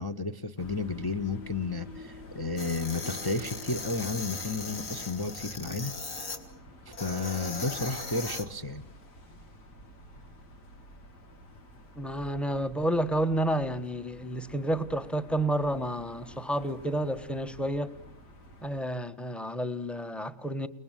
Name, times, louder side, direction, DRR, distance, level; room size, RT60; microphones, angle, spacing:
voice 1, 0.0-6.2 7.0-8.8, left 3 dB, 20° left, 6 dB, 0.7 m, -32 dB
sound 1, 0.6-18.8, left 1 dB, 80° left, 3.3 m, -49 dB
sound 2, 2.6-6.4 6.9-8.4, left 3 dB, 50° left, 3.1 m, -38 dB
voice 2, 12.0-17.9 18.6-20.7, right 1 dB, ahead, 10 dB, 1.1 m, -30 dB
29.5 x 20.0 x 9.1 m, 0.89 s
omnidirectional pair, 1.8 m